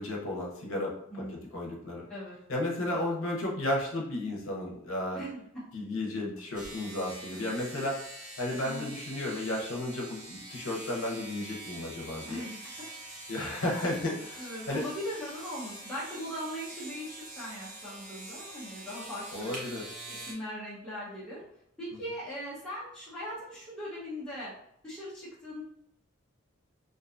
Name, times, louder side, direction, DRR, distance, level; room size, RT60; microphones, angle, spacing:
voice 1, 0.0-2.0 2.5-5.2 5.7-8.0 8.4-12.4 13.3-14.8 19.3-19.8, left 1 dB, 75° left, -2 dB, 0.7 m, -33 dB
voice 2, 1.1-1.5 2.1-2.4 5.1-5.4 8.6-8.9 12.3-12.6 14.4-19.5 20.1-21.4 21.8-24.5 24.8-25.6, equal, 5° left, -11 dB, 0.8 m, -39 dB
sound 1, 6.5-20.3, right 2 dB, 35° right, 0.6 m, -45 dB
2.5 x 2.2 x 2.5 m, 0.73 s
head